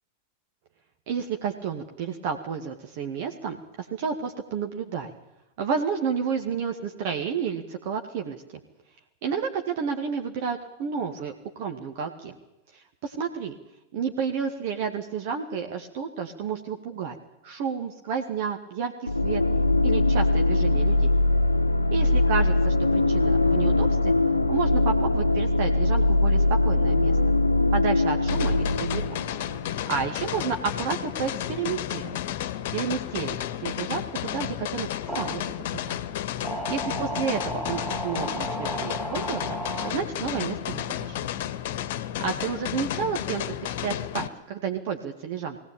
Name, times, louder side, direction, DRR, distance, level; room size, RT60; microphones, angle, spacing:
voice 1, 1.1-5.1 5.6-8.4 9.2-12.4 12.7-13.5 13.9-17.2 17.4-18.9 19.2-19.4 19.8-21.1 21.9-24.1 24.5-27.2 27.7-29.2 29.9-32.2 32.7-34.9 35.2-35.9 36.7-39.4 39.8-41.3 42.2-43.5 43.8-45.6, right 6 dB, 50° right, 4 dB, 2.1 m, -31 dB
sound 1, 19.1-29.8, left 2 dB, 85° left, 0.9 m, -22 dB
sound 2, 28.3-44.3, left 11 dB, 50° left, 1.3 m, -32 dB
sound 3, 34.9-35.5 36.4-39.9, right 2 dB, 5° right, 2.8 m, -34 dB
21.5 x 18.0 x 8.8 m, 0.92 s
figure-of-eight pair, 90°, 0 cm